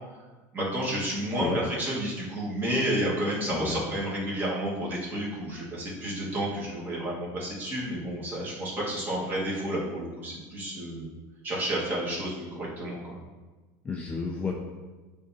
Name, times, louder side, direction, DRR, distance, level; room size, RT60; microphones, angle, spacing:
voice 1, 0.5-11.1 11.4-13.2, right 1 dB, 20° right, -6 dB, 1.7 m, -31 dB
voice 2, 3.5-3.8 13.8-14.5, left 4 dB, 15° left, 0 dB, 0.5 m, -31 dB
9.1 x 3.5 x 2.9 m, 1.3 s
cardioid pair, 155°, 9 cm